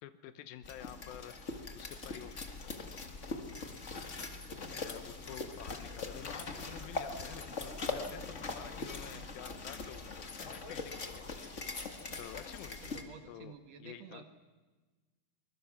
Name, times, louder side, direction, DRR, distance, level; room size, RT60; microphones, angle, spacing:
voice 1, 0.0-1.5 1.8-2.4 4.6-11.2 12.2-13.0 13.3-13.5 13.8-14.2, left 11 dB, 90° left, 11 dB, 2.7 m, -49 dB
sound 1, 0.6-13.0, left 3 dB, 40° left, 1.0 m, -42 dB
voice 2, 12.1-12.4 12.8-14.2, right 5 dB, 60° right, 7 dB, 2.2 m, -52 dB
23.5 x 21.5 x 7.2 m, 1.3 s
omnidirectional pair, 4.0 m